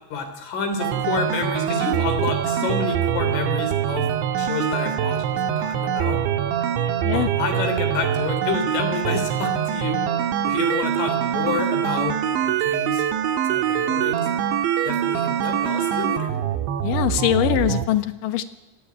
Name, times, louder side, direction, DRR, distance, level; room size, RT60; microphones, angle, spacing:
voice 1, 0.1-4.1 4.4-6.2 7.1-10.0 10.5-13.1 13.5-14.3 14.9-16.3, left 4 dB, 85° left, 8 dB, 6.1 m, -29 dB
sound 1, 0.8-17.9, right 9 dB, 75° right, 3.5 m, -24 dB
voice 2, 16.8-18.4, left 12 dB, 65° left, 9 dB, 2.2 m, -22 dB
27.0 x 18.0 x 9.6 m, 1.1 s
omnidirectional pair, 5.5 m